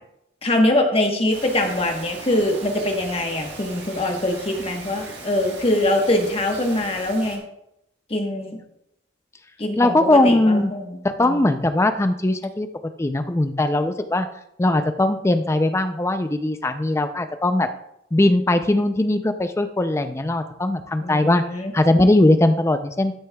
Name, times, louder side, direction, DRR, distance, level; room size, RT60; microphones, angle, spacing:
voice 1, 0.4-7.4 8.1-8.6 9.6-9.9 10.2-11.5 21.0-21.7, left 1 dB, 30° left, 3 dB, 1.1 m, -23 dB
Bird vocalization bird call bird song, 1.3-7.4, right 3 dB, 60° right, 1.6 m, -38 dB
voice 2, 9.8-10.7 11.0-12.7 13.0-14.3 14.6-17.7 18.1-21.4 21.7-23.1, left 1 dB, 15° left, 9 dB, 0.4 m, -20 dB
13.0 x 6.3 x 2.3 m, 0.80 s
head